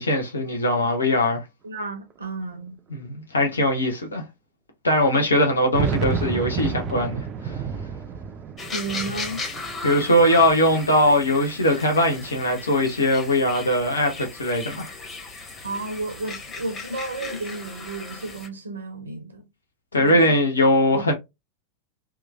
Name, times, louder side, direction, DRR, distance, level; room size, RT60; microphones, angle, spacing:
voice 1, 0.0-1.4 2.9-4.2 4.8-7.5 9.8-14.9 19.9-21.1, left 1 dB, 75° left, 0.7 m, -21 dB
voice 2, 1.6-2.8 8.7-9.4 15.6-19.4 20.0-20.4 20.9-21.0, right 2 dB, 75° right, 0.6 m, -32 dB
sound 1, 1.8-1.9 2.1-2.2 3.1-3.2 3.6-3.7 5.4-11.8 12.2-13.1, right 5 dB, 30° right, 0.3 m, -32 dB
sound 2, 8.6-18.5, left 3 dB, 20° left, 1.0 m, -37 dB
3.0 x 2.3 x 2.3 m
figure-of-eight pair, 90°, 0 cm